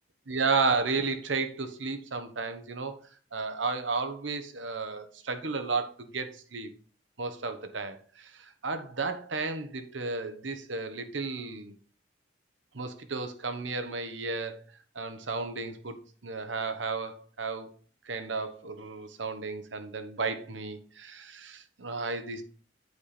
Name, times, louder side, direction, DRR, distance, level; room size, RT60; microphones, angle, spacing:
voice 1, 0.3-2.9 3.3-6.7 7.2-11.7 12.7-14.6 14.9-17.7 18.0-22.4, right 4 dB, 75° right, 1.1 m, -33 dB
8.4 x 5.0 x 4.2 m
head